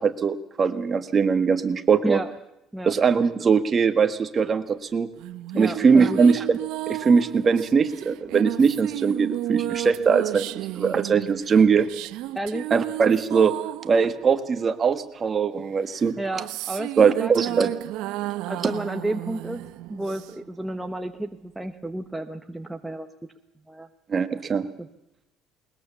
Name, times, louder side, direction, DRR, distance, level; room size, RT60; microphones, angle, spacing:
voice 1, 0.0-2.2 2.8-5.1 5.6-6.6 6.9-10.4 10.7-11.9 12.7-13.5 13.8-16.2 17.0-17.7 18.6-18.7 24.1-24.7, right 5 dB, 30° right, 10 dB, 1.6 m, -21 dB
sound 1, 5.2-15.1 15.9-20.6, right 16 dB, 80° right, 0.7 m, -33 dB
voice 2, 5.5-6.2 12.3-12.7 16.2-17.7 18.5-19.6 19.9-23.1 23.7-23.9 24.8-24.9, right 1 dB, 5° right, 6 dB, 1.0 m, -31 dB
21.0 x 21.0 x 7.1 m, 0.86 s
cardioid pair, 145°, 0 cm